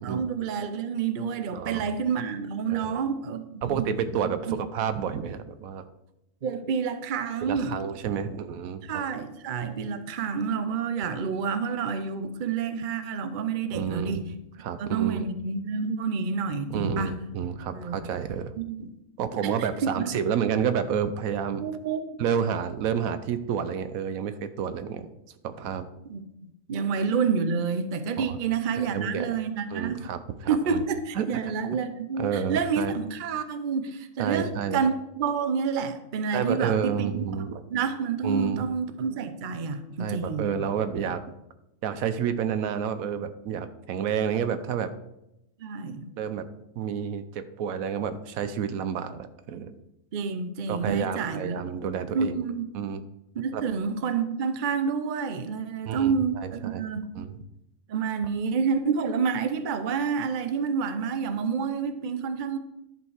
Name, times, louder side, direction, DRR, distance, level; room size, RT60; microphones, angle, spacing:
voice 1, 0.0-3.9 4.5-4.6 6.4-7.7 8.8-14.2 14.8-17.1 17.7-18.0 18.6-18.9 19.4-20.1 21.6-22.2 26.1-30.0 30.5-37.2 37.7-40.5 45.6-46.1 50.1-51.6 52.1-52.7 53.3-57.1 57.9-62.6, right 6 dB, 45° right, 9 dB, 0.7 m, -29 dB
voice 2, 1.5-1.8 2.7-3.0 3.6-5.8 7.4-9.1 13.7-14.2 14.6-15.3 16.7-18.5 19.2-21.6 22.2-25.1 25.4-25.8 26.7-26.9 28.2-28.4 28.8-29.3 29.7-30.8 31.2-31.4 32.2-32.9 34.2-34.8 36.3-37.6 38.2-38.7 40.0-41.2 41.8-44.9 46.2-46.5 46.8-49.8 50.7-52.4 52.7-53.0 53.5-53.6 55.9-56.9 57.2-57.3, right 7 dB, 85° right, 12 dB, 1.1 m, -30 dB
11.0 x 5.3 x 4.9 m, 0.88 s
omnidirectional pair, 1.4 m